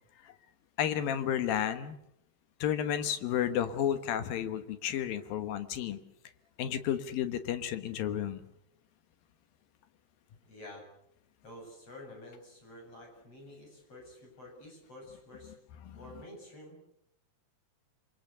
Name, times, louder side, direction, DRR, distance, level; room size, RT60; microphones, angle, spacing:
voice 1, 0.8-2.0 2.6-6.0 6.6-8.4 15.8-16.0, left 10 dB, 65° left, 10 dB, 2.6 m, -32 dB
voice 2, 10.5-10.8 11.4-15.5 15.9-16.8, left 1 dB, 30° left, 1 dB, 8.7 m, -50 dB
28.0 x 23.5 x 6.8 m, 0.76 s
omnidirectional pair, 5.2 m